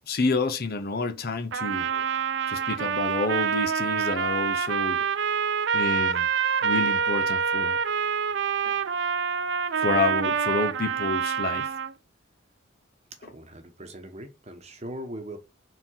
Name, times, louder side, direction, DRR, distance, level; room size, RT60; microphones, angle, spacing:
voice 1, 0.1-2.1 2.5-5.1 5.7-6.3 6.6-7.8 8.6-8.7 9.8-11.7, left 3 dB, 50° left, 0.7 m, -29 dB
Trumpet, 1.5-11.9, right 6 dB, 60° right, 0.5 m, -26 dB
voice 2, 13.1-15.4, right 1 dB, 35° right, 1.2 m, -40 dB
4.8 x 3.8 x 5.7 m
head